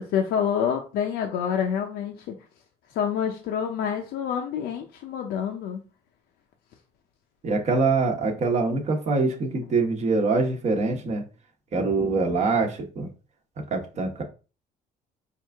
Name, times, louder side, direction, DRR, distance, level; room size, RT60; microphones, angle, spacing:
voice 1, 0.1-2.4 2.9-5.8, left 8 dB, 80° left, 2 dB, 0.6 m, -27 dB
voice 2, 7.4-11.2 11.7-13.1 13.7-14.2, right 3 dB, 40° right, 2 dB, 1.0 m, -24 dB
4.6 x 2.5 x 3.4 m, 0.34 s
cardioid pair, 110°, 17 cm